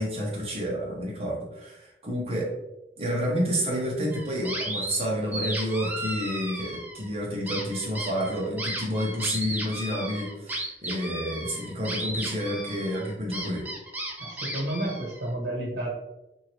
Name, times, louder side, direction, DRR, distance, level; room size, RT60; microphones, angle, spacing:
voice 1, 0.0-2.5 3.0-13.7, equal, 35° right, -3 dB, 0.8 m, -29 dB
sound 1, 4.1-5.0 5.3-7.1 7.5-15.3, right 1 dB, 10° right, 0.4 m, -35 dB
voice 2, 14.2-15.9, right 1 dB, 65° right, -4 dB, 1.3 m, -31 dB
2.9 x 2.7 x 3.0 m, 0.93 s
head